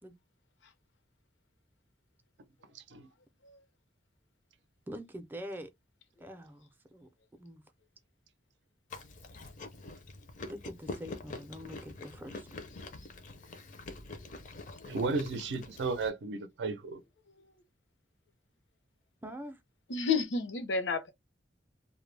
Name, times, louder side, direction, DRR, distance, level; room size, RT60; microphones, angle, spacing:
voice 1, 4.9-5.7 6.2-7.1 7.4-7.6 10.5-12.5 19.2-19.6, equal, 10° right, 0.4 m, -44 dB
Chewing mastication, 8.9-16.1, left 2 dB, 45° left, 0.5 m, -45 dB
voice 2, 14.8-17.0, right 3 dB, 70° right, 0.4 m, -34 dB
voice 3, 19.9-21.1, left 5 dB, 90° left, 0.6 m, -30 dB
2.1 x 2.0 x 3.2 m
head